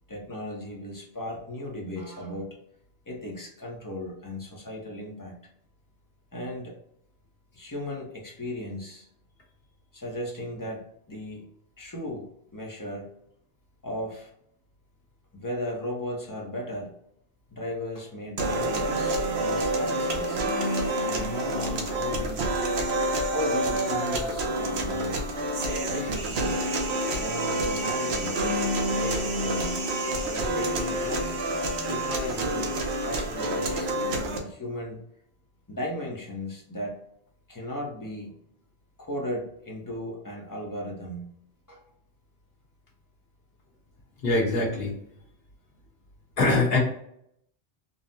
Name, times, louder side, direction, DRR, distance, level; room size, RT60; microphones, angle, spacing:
voice 1, 0.1-2.6 3.1-5.3 6.3-6.8 7.5-9.1 9.9-11.5 11.8-13.1 13.8-14.3 15.3-17.0 17.5-20.5 21.0-22.4 23.3-25.2 25.9-26.5 27.1-28.4 28.9-29.8 30.2-31.3 31.9-35.0 35.7-37.0 37.5-38.3 39.0-41.3 41.7-41.8, left 1 dB, 20° left, -1 dB, 0.6 m, -36 dB
sound 1, 18.4-34.4, right 1 dB, 70° right, 0.9 m, -28 dB
voice 2, 44.2-44.9 46.4-46.8, left 2 dB, 60° left, -3 dB, 1.3 m, -23 dB
3.8 x 2.0 x 2.6 m, 0.72 s
omnidirectional pair, 1.2 m